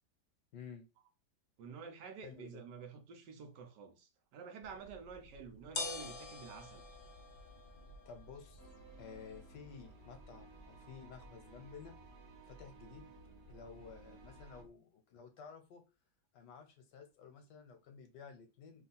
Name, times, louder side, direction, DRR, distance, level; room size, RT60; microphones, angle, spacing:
voice 1, 0.5-0.9 2.2-2.6 8.0-8.7 9.0-11.9 12.4-13.1 13.5-15.8 16.3-18.9, left 6 dB, 80° left, 1.4 m, -53 dB
voice 2, 1.6-6.8, right 6 dB, 80° right, 1.4 m, -50 dB
sound 1, 4.6-14.7, left 3 dB, 65° left, 0.4 m, -50 dB
sound 2, 8.6-14.6, right 4 dB, 45° right, 0.9 m, -59 dB
3.5 x 2.4 x 4.0 m
omnidirectional pair, 1.8 m